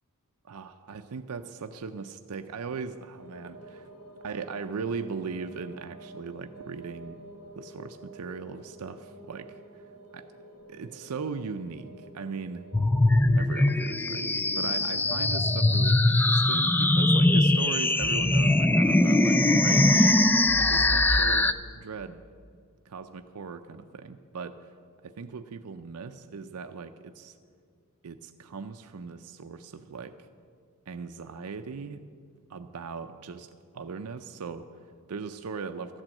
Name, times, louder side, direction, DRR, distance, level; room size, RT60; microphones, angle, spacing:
voice 1, 0.5-3.9 4.2-7.2 7.6-9.9 10.1-10.3 10.7-12.7 13.3-22.2 22.9-24.7 25.0-27.4 28.0-30.2 30.9-32.0 32.5-36.0, right 5 dB, 80° right, 8 dB, 0.5 m, -39 dB
sound 1, 3.2-15.7, right 1 dB, 85° left, 2.2 m, -49 dB
sound 2, 12.7-21.5, left 2 dB, 10° left, 0.3 m, -22 dB
13.5 x 8.9 x 7.7 m, 2.1 s
head